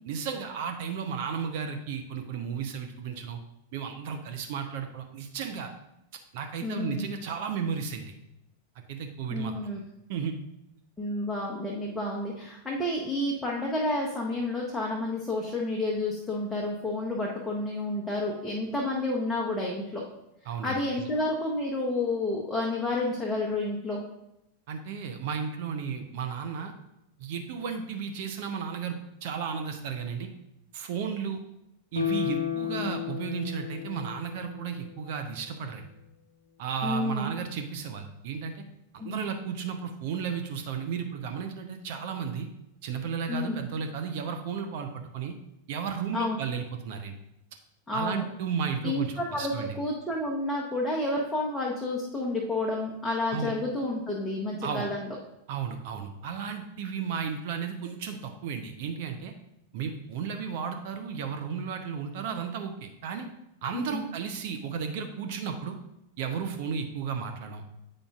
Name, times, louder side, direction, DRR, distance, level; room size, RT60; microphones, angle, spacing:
voice 1, 0.0-3.4 3.7-5.7 6.3-8.1 8.9-9.5 10.1-10.4 20.5-21.1 24.7-26.7 27.2-30.3 30.7-31.4 31.9-35.9 36.6-38.6 38.9-42.5 42.8-45.3 45.7-47.1 47.9-49.8 53.3-53.5 54.6-54.9 55.5-59.3 59.7-63.3 63.6-65.8 66.2-67.6, right 6 dB, 50° right, 6 dB, 0.5 m, -34 dB
voice 2, 6.6-7.1 9.3-9.8 11.0-20.0 20.6-24.0 36.8-37.3 39.0-39.2 43.3-43.6 46.1-46.4 47.9-48.2 48.8-49.5 49.8-55.1 63.7-64.0, left 2 dB, 10° left, -3 dB, 0.8 m, -30 dB
Guitar, 31.9-35.2 35.6-35.7, left 9 dB, 75° left, 0.5 m, -33 dB
8.1 x 5.0 x 2.4 m, 0.86 s
figure-of-eight pair, 90°, 0 cm